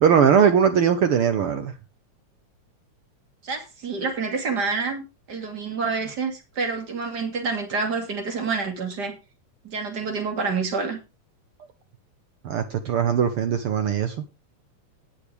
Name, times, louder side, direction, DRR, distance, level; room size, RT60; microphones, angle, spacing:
voice 1, 0.0-1.7 12.4-14.2, right 7 dB, 65° right, 1.4 m, -20 dB
voice 2, 3.4-9.2 9.6-11.0, right 4 dB, 35° right, 2.8 m, -28 dB
18.0 x 6.6 x 3.4 m
omnidirectional pair, 3.4 m